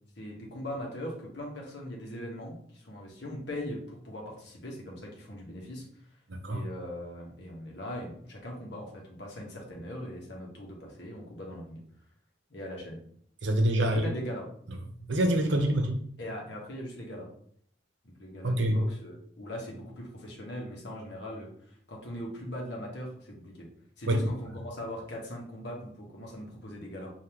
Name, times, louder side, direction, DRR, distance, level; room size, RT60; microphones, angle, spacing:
voice 1, 0.2-5.8 6.5-11.8 12.5-13.0 13.8-14.4 16.2-17.3 18.0-21.5 21.9-23.7 24.0-27.1, left 1 dB, 65° left, -1 dB, 1.2 m, -40 dB
voice 2, 6.3-6.6 13.4-14.1 15.0-16.0 18.4-18.8 24.1-24.2, right 1 dB, 80° right, 5 dB, 0.7 m, -26 dB
5.2 x 2.7 x 3.0 m, 0.63 s
head